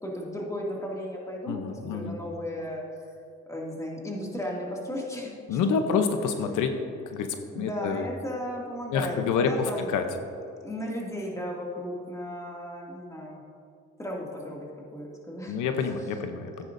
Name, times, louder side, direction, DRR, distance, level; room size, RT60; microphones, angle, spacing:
voice 1, 0.0-3.1 3.5-6.1 6.5-6.7 7.5-9.9 10.6-13.4 14.0-15.6 16.2-16.3, left 1 dB, 10° left, -3 dB, 2.3 m, -35 dB
voice 2, 1.5-2.2 5.5-6.7 7.1-8.1 8.9-10.0 15.5-16.7, left 6 dB, 85° left, 6 dB, 0.8 m, -28 dB
14.0 x 9.9 x 2.6 m, 2.5 s
cardioid pair, 90°, 30 cm